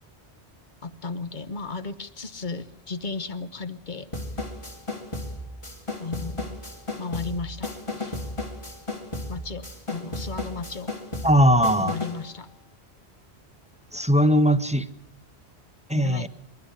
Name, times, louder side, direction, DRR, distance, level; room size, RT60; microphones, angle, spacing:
voice 1, 0.8-4.1 6.0-6.6 7.0-7.7 8.0-8.1 9.3-10.9 11.8-12.5 15.9-16.3, left 4 dB, 45° left, 12 dB, 1.2 m, -34 dB
sound 1, 4.1-12.3, left 2 dB, 25° left, 2.6 m, -34 dB
voice 2, 11.2-11.9 13.9-14.9 15.9-16.3, equal, 5° right, 12 dB, 0.7 m, -19 dB
26.0 x 12.0 x 9.9 m, 0.79 s
omnidirectional pair, 1.1 m